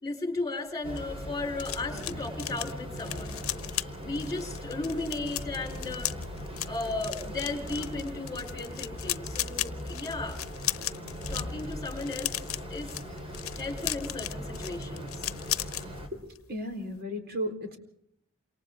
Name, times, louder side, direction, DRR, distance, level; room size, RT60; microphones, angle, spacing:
voice 1, 0.0-3.4 4.0-6.1 6.7-10.4 11.3-12.4 12.7-12.9 13.6-15.2, left 3 dB, 20° left, 4 dB, 4.5 m, -35 dB
sound 1, 0.7-15.9 16.2-16.5 16.7-17.0, left 14 dB, 90° left, 0.8 m, -36 dB
sound 2, 0.8-16.1, equal, 30° right, 3.8 m, -39 dB
voice 2, 16.2-17.8, equal, 50° right, 5 dB, 4.1 m, -35 dB
28.5 x 27.0 x 3.7 m, 0.68 s
head